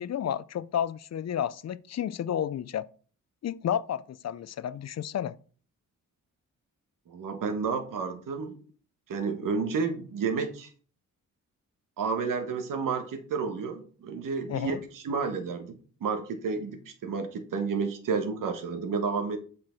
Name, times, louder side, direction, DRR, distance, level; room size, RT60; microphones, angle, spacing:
voice 1, 0.0-2.9 3.4-5.4 14.5-14.8, left 9 dB, 55° left, 0.5 m, -31 dB
voice 2, 7.1-8.6 9.1-10.7 12.0-19.4, right 5 dB, 90° right, 1.3 m, -31 dB
7.8 x 5.8 x 4.5 m
cardioid pair, 95°, 31 cm